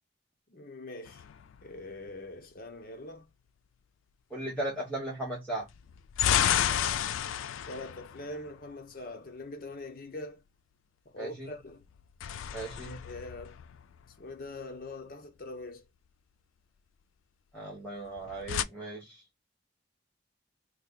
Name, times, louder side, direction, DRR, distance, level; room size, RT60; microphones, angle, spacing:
voice 1, 0.5-1.2 1.6-3.3 7.7-10.4 11.1-11.8 12.8-13.6 14.2-15.9, left 2 dB, 45° left, 0.7 m, -43 dB
sound 1, 1.0-2.1 5.7-9.0 11.8-14.3 18.1-18.6, left 10 dB, 80° left, 0.3 m, -31 dB
voice 2, 4.3-5.7 11.2-11.5 12.5-13.0 17.5-19.2, right 1 dB, 5° left, 0.9 m, -37 dB
3.1 x 2.3 x 3.7 m
head